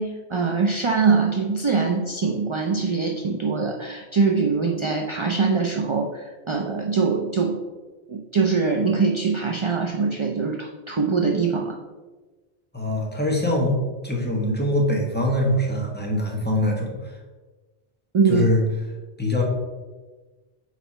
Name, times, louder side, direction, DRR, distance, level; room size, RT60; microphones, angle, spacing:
voice 1, 0.0-7.6 8.1-11.8 18.1-18.5, right 4 dB, 45° right, 1 dB, 0.4 m, -23 dB
voice 2, 12.7-13.8 14.0-17.1 18.3-18.6 19.2-19.4, left 1 dB, 10° left, -2 dB, 1.2 m, -23 dB
4.9 x 4.4 x 5.4 m, 1.2 s
omnidirectional pair, 1.1 m